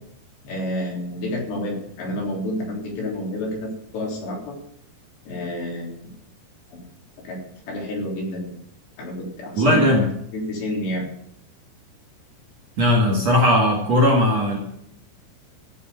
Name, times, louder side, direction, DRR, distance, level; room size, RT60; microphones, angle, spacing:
voice 1, 0.4-4.6 5.3-6.1 6.7-6.8 7.2-7.4 7.7-8.5 9.0-9.9 10.3-11.1, left 1 dB, 65° left, -2 dB, 5.7 m, -29 dB
voice 2, 9.6-10.1 12.8-14.6, left 1 dB, 45° right, -2 dB, 2.5 m, -18 dB
14.0 x 7.0 x 8.0 m, 0.75 s
omnidirectional pair, 5.4 m